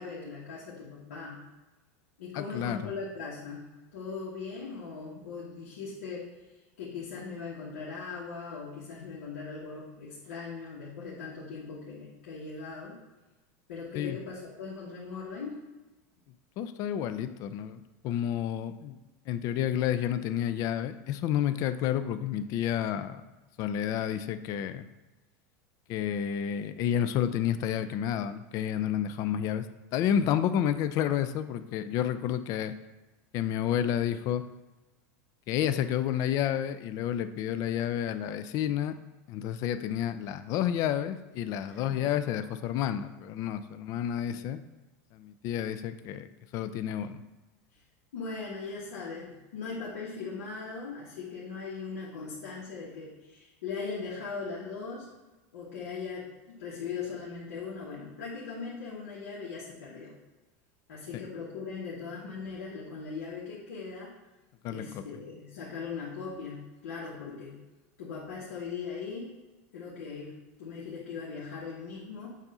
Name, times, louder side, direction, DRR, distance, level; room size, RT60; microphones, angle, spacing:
voice 1, 0.0-1.4 2.2-13.0 13.7-15.6 41.7-42.1 47.7-47.8 48.1-55.1 55.5-60.1 60.9-64.1 64.7-67.6 68.0-69.3 69.7-72.4, left 5 dB, 90° left, -6 dB, 1.4 m, -39 dB
voice 2, 2.4-2.8 14.0-14.2 16.6-19.0 19.3-23.2 23.6-24.8 25.9-29.7 29.9-32.7 33.3-34.4 35.5-39.0 39.3-44.6 45.1-47.2 64.6-64.9, left 10 dB, 45° left, 11 dB, 0.4 m, -30 dB
7.2 x 2.6 x 5.5 m, 1.1 s
supercardioid pair, 135°, 8 cm